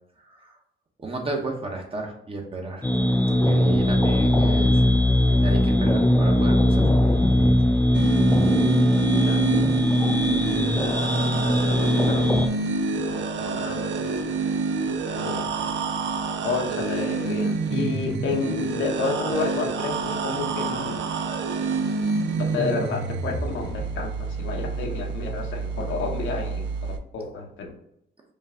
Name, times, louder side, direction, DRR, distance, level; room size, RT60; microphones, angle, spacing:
voice 1, 1.0-2.9 3.3-4.8 5.4-6.9, right 2 dB, 30° right, 1 dB, 1.1 m, -32 dB
sound 1, 2.8-12.5, left 1 dB, 10° left, 0.4 m, -20 dB
sound 2, 7.9-27.0, right 4 dB, 70° right, 0.6 m, -28 dB
voice 2, 10.0-10.8 11.2-12.4 13.0-14.4 14.8-15.4 16.4-21.0 22.3-26.6 27.1-27.7, left 4 dB, 75° left, 1 dB, 1.1 m, -31 dB
5.2 x 2.4 x 3.7 m, 0.74 s
cardioid pair, 90°, 20 cm